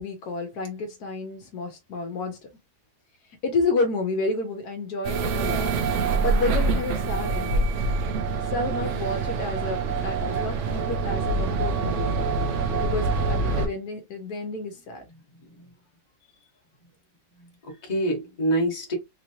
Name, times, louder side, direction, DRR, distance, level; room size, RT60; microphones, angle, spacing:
voice 1, 0.0-2.4 3.4-5.7 6.0-7.8 8.5-12.2 12.8-15.0, left 3 dB, 75° left, 1.4 m, -30 dB
sound 1, 5.0-13.7, right 4 dB, 60° right, 0.9 m, -25 dB
voice 2, 17.3-19.0, right 1 dB, 25° left, 1.3 m, -27 dB
3.7 x 2.9 x 2.8 m
omnidirectional pair, 1.7 m